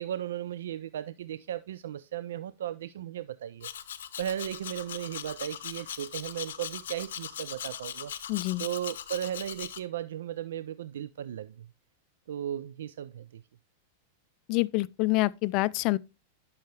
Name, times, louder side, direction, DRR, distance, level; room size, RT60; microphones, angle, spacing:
voice 1, 0.0-3.7 4.2-8.1 8.6-11.7 12.3-13.4, right 11 dB, 80° right, 0.3 m, -36 dB
Domestic sounds home sounds, 3.6-9.8, left 10 dB, 85° left, 0.6 m, -40 dB
voice 2, 8.3-8.6 14.5-16.0, left 21 dB, 45° left, 0.3 m, -26 dB
10.5 x 5.6 x 3.2 m
hypercardioid pair, 130°, 0 cm